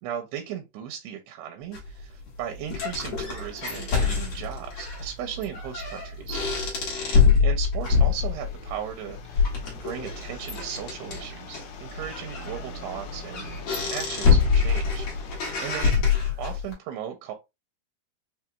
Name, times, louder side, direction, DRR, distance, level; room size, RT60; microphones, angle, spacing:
voice 1, 0.0-6.4 7.4-9.5 9.8-13.5 13.9-15.1 15.6-16.0 16.4-17.3, right 9 dB, 85° right, 2.7 m, -36 dB
sound 1, 1.7-16.7, left 5 dB, 55° left, 2.1 m, -25 dB
sound 2, 7.8-15.9, left 5 dB, 75° left, 2.7 m, -44 dB
6.2 x 2.9 x 2.2 m
omnidirectional pair, 4.7 m